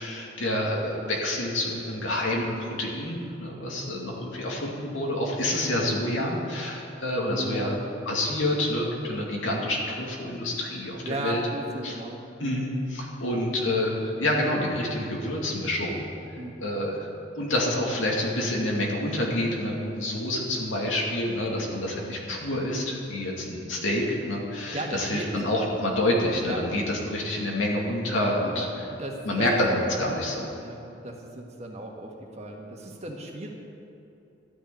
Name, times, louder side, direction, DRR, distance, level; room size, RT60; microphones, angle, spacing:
voice 1, 0.0-7.8 8.1-11.4 11.8-11.9 12.4-16.0 16.6-17.1 17.4-28.7 29.2-30.5, left 1 dB, 90° left, -2 dB, 2.5 m, -28 dB
voice 2, 7.3-8.0 9.6-9.7 11.0-12.6 16.4-16.6 24.7-25.3 26.4-26.6 28.5-29.5 30.0-30.2 30.6-30.8 31.0-33.5, right 1 dB, 35° right, 0 dB, 1.6 m, -36 dB
12.5 x 6.5 x 9.6 m, 2.8 s
head